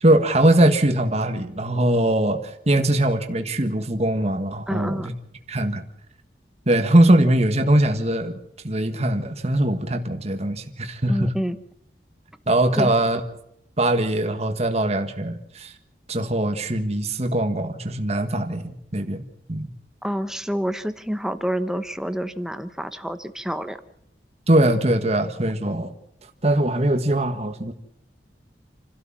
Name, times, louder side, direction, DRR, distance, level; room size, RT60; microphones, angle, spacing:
voice 1, 0.0-5.1 5.5-5.8 6.7-11.3 12.5-13.2 13.8-15.7 16.1-19.7 24.5-25.9 26.4-27.7, right 1 dB, 40° right, 7 dB, 1.6 m, -21 dB
voice 2, 4.7-5.1 11.1-11.6 12.7-12.9 20.0-23.8, equal, 5° right, 10 dB, 1.0 m, -28 dB
28.5 x 13.0 x 7.4 m, 0.74 s
head